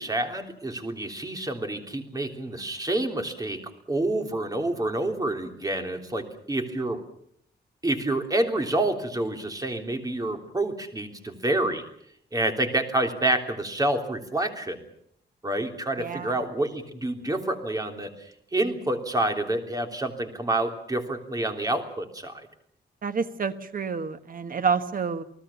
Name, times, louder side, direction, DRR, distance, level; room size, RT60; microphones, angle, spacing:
voice 1, 0.0-3.6 3.9-7.0 7.8-11.8 12.3-14.8 15.4-18.1 18.5-22.5, right 1 dB, 20° right, 4 dB, 3.3 m, -28 dB
voice 2, 16.0-16.4 23.0-25.2, right 5 dB, 50° right, 10 dB, 1.4 m, -28 dB
29.5 x 19.0 x 7.2 m, 0.68 s
wide cardioid pair, 135°, 18 cm